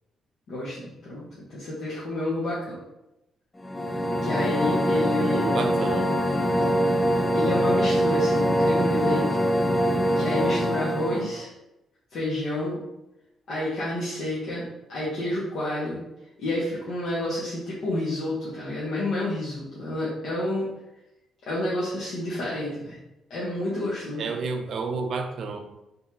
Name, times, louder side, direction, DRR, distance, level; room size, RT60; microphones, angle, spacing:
voice 1, 0.5-2.8 4.2-5.6 7.3-9.5 10.1-11.5 12.1-12.8 13.5-16.0 16.4-20.7 21.5-23.0 23.3-24.3, left 1 dB, 70° left, -9 dB, 1.3 m, -29 dB
sound 1, 3.6-11.4, equal, 20° left, 0.5 m, -23 dB
voice 2, 5.3-6.1 24.2-25.6, right 4 dB, 60° right, 5 dB, 0.6 m, -30 dB
4.0 x 3.6 x 2.9 m, 0.91 s
cardioid pair, 80°, 0 cm